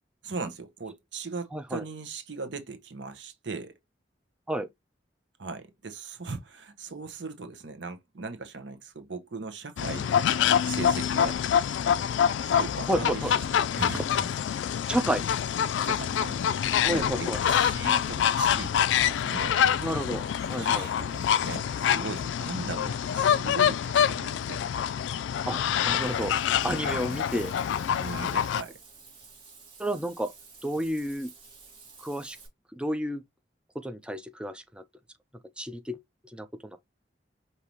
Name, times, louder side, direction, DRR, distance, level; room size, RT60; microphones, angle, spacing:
voice 1, 0.2-3.8 5.4-10.4 10.6-11.4 12.4-14.3 15.8-19.7 20.6-24.7 26.8-27.0 27.9-28.7, right 4 dB, 85° right, 1.0 m, -39 dB
voice 2, 1.5-1.8 4.5-4.7 12.9-13.3 14.9-15.3 16.8-17.4 19.8-20.2 20.5-20.9 25.5-26.3 26.6-27.5 29.8-30.3 30.6-31.3 32.0-32.4 32.7-33.2 33.7-34.8 35.6-36.0 36.3-36.8, right 1 dB, 5° right, 0.5 m, -31 dB
sound 1, 9.8-28.6, left 8 dB, 90° left, 0.3 m, -26 dB
sound 2, 18.9-23.1, left 4 dB, 55° left, 0.6 m, -50 dB
Water / Bathtub (filling or washing), 25.9-32.5, right 4 dB, 30° right, 1.9 m, -51 dB
5.2 x 2.8 x 3.0 m
head